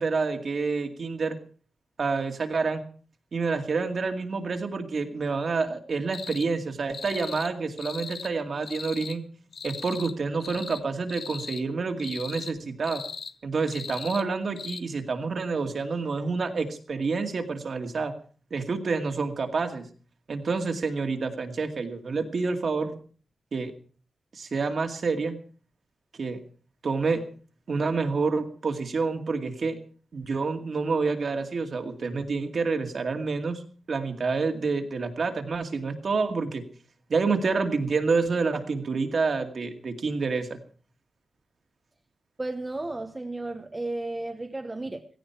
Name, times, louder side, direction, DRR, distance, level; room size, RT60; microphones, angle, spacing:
voice 1, 0.0-1.4 2.0-2.9 3.3-9.2 9.6-13.0 13.4-18.1 18.5-19.9 20.3-22.9 23.5-23.7 24.3-25.4 26.2-26.4 26.8-27.3 27.7-29.8 30.1-33.6 33.9-36.6 37.1-40.6, right 4 dB, 50° right, 5 dB, 2.2 m, -28 dB
sound 1, 6.1-6.5 6.9-7.5 7.8-8.3 8.6-9.2 9.5-10.1 10.4-10.8 11.1-11.6 12.0-12.5 12.8-13.3 13.7-14.2 14.6-14.8, left 5 dB, 55° left, 1.0 m, -39 dB
voice 2, 42.4-45.1, right 2 dB, 15° right, 6 dB, 0.9 m, -33 dB
17.0 x 16.5 x 4.6 m, 0.42 s
wide cardioid pair, 160°, 0 cm